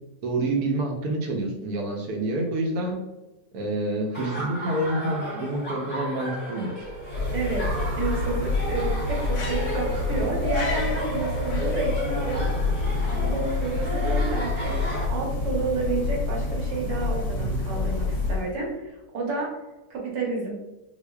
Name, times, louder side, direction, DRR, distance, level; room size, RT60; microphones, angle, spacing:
voice 1, 0.2-3.0 3.5-6.7 17.3-17.6, right 2 dB, 70° right, 1 dB, 1.1 m, -28 dB
Laughter, 4.1-15.1, equal, 25° left, 1.0 m, -33 dB
sound 1, 6.8-18.7, left 3 dB, 60° left, 1.0 m, -27 dB
voice 2, 7.3-12.5 13.0-14.7 15.1-19.5 19.9-20.6, right 3 dB, 85° right, -2 dB, 1.6 m, -30 dB
4.6 x 2.4 x 2.2 m, 1.1 s
omnidirectional pair, 1.9 m